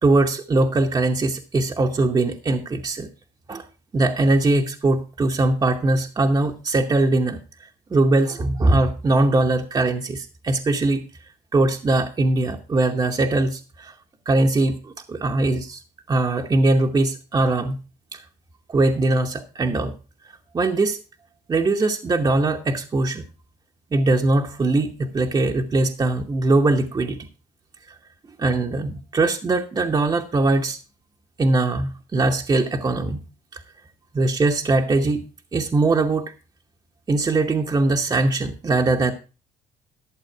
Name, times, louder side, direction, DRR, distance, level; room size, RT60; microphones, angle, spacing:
voice 1, 0.0-3.1 3.5-3.6 3.9-7.4 7.9-11.0 11.5-13.9 14.3-15.8 16.1-17.8 18.1-18.2 18.7-19.9 20.5-21.0 21.5-23.3 23.9-27.2 28.4-30.8 31.4-33.3 33.5-33.6 34.1-35.3 35.5-36.3 37.1-39.1, right 2 dB, 25° right, 3 dB, 0.9 m, -21 dB
12.0 x 7.1 x 4.5 m, 0.33 s
cardioid pair, 110°, 17 cm